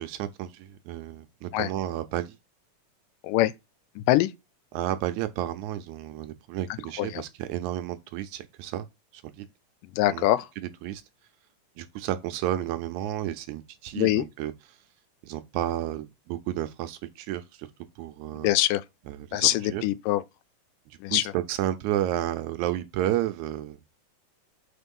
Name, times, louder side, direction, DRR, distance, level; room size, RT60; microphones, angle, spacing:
voice 1, 0.0-2.4 4.7-8.9 9.1-9.5 10.1-10.3 10.6-11.0 11.8-14.5 15.2-17.7 18.0-18.5 19.1-19.8 20.9-23.8, right 13 dB, 80° right, 1.7 m, -32 dB
voice 2, 4.0-4.3 7.0-7.2 9.8-10.5 14.0-14.2 18.4-18.8 19.3-20.2 21.0-21.2, left 16 dB, 90° left, 2.2 m, -23 dB
4.5 x 4.3 x 5.3 m
omnidirectional pair, 3.7 m